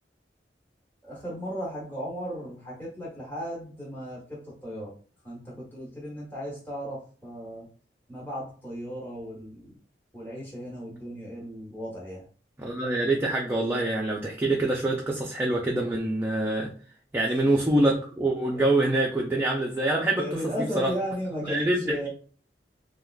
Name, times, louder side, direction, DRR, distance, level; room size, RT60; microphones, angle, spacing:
voice 1, 1.0-4.9 5.2-7.7 8.1-9.8 10.1-12.3 18.5-18.6 20.1-22.1, equal, 10° left, -6 dB, 1.1 m, -35 dB
voice 2, 12.6-16.7 17.1-20.2 20.7-20.9 21.5-22.1, right 2 dB, 15° right, -2 dB, 0.4 m, -25 dB
3.4 x 2.3 x 2.3 m, 0.41 s
head